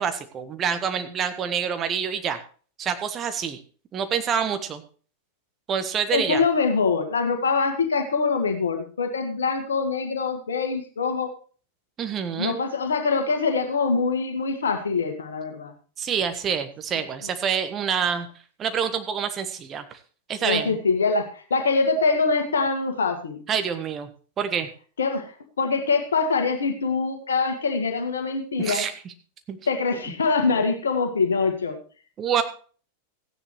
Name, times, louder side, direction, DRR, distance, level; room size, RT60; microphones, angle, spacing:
voice 1, 0.0-2.4 2.8-3.6 3.9-4.8 5.7-6.4 12.0-12.6 16.0-18.3 18.6-19.8 20.3-20.8 23.5-24.1 24.4-24.7 28.6-28.9 29.5-29.6 30.5-30.6 32.2-32.4, right 7 dB, 25° right, 9 dB, 1.4 m, -26 dB
voice 2, 6.1-11.3 12.4-15.7 20.4-23.4 25.0-25.3 25.6-28.9 29.7-31.8, left 4 dB, 70° left, 6 dB, 1.8 m, -24 dB
15.0 x 10.0 x 3.2 m, 0.40 s
figure-of-eight pair, 90°, 0 cm